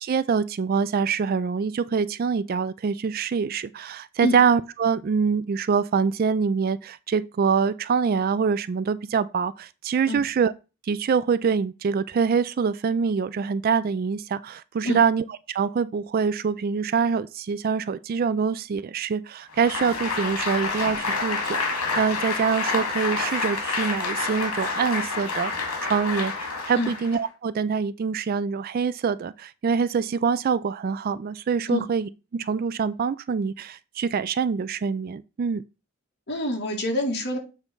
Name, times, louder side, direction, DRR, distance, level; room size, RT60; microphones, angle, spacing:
voice 1, 0.0-10.5 10.8-21.6 22.0-25.5 25.8-35.6, right 6 dB, 40° right, 0.3 m, -25 dB
Applause, 19.5-27.3, left 3 dB, 75° left, 2.2 m, -28 dB
voice 2, 36.3-37.4, left 1 dB, 50° left, 2.2 m, -26 dB
8.2 x 3.4 x 5.3 m
head